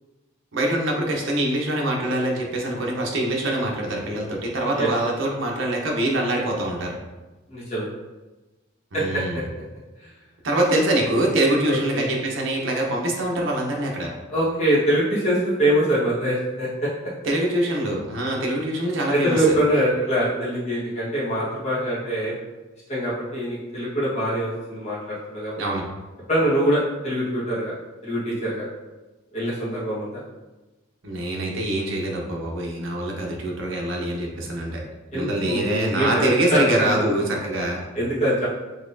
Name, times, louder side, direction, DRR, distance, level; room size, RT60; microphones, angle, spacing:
voice 1, 0.5-7.0 8.9-9.4 10.4-14.1 17.2-19.5 25.6-25.8 31.0-34.8 35.1-37.8, right 1 dB, 70° right, -1 dB, 0.7 m, -24 dB
voice 2, 7.5-7.9 8.9-9.4 11.6-12.1 14.3-16.9 19.1-22.3 22.9-25.6 26.3-27.7 28.0-28.6 29.3-30.2 35.1-35.6 35.9-37.0 37.9-38.5, right 1 dB, 35° left, -8 dB, 1.3 m, -24 dB
4.0 x 3.0 x 2.6 m, 1.1 s
head